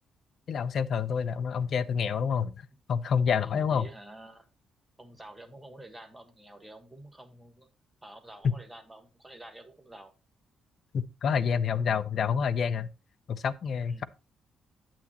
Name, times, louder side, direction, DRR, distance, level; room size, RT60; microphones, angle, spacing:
voice 1, 0.5-3.9 8.4-8.5 10.9-12.9 13.3-14.0, left 6 dB, 45° left, 0.6 m, -28 dB
voice 2, 3.3-4.4 5.0-7.7 8.0-10.1 13.9-14.0, right 1 dB, 10° right, 1.3 m, -49 dB
8.9 x 8.1 x 2.9 m
cardioid pair, 165°, 0 cm